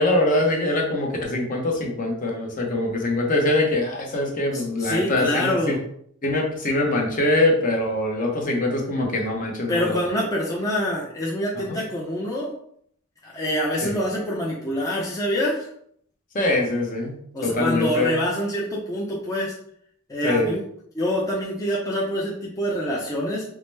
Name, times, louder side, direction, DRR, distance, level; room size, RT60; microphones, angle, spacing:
voice 1, 0.0-5.8 6.2-9.9 11.5-11.8 13.8-13.9 16.3-17.1 17.4-18.1 20.2-20.5, left 2 dB, 40° left, 0 dB, 0.8 m, -23 dB
voice 2, 4.5-5.8 9.7-12.5 13.2-15.7 17.3-19.5 20.1-20.6 20.9-23.4, equal, 15° left, -5 dB, 0.6 m, -26 dB
4.7 x 2.1 x 3.2 m, 0.66 s
head